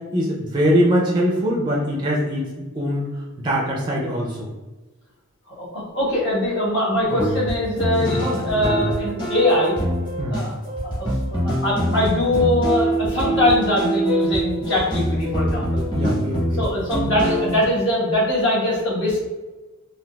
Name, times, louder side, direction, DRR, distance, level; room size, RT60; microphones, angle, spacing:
voice 1, 0.1-2.5 2.8-3.1 3.4-4.5 8.0-8.2 8.5-8.7 10.2-10.4 15.9-16.6, equal, 20° right, -2 dB, 0.4 m, -22 dB
voice 2, 5.5-9.8 10.3-10.5 10.8-15.9 16.6-19.2, left 1 dB, 55° left, -7 dB, 1.2 m, -22 dB
sound 1, 7.1-17.7, right 1 dB, 20° left, 0.9 m, -24 dB
3.8 x 2.3 x 2.2 m, 1.2 s
head